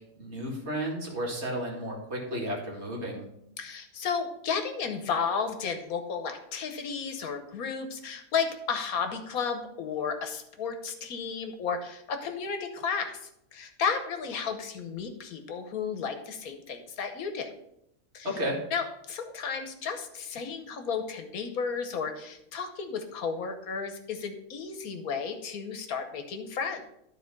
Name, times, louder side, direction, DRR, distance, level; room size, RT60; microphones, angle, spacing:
voice 1, 0.1-3.3 18.2-18.6, equal, 50° right, -1 dB, 2.3 m, -33 dB
voice 2, 3.6-17.5 18.1-18.3 18.7-26.9, left 6 dB, 80° left, 7 dB, 1.5 m, -33 dB
12.0 x 4.2 x 5.3 m, 0.78 s
omnidirectional pair, 1.5 m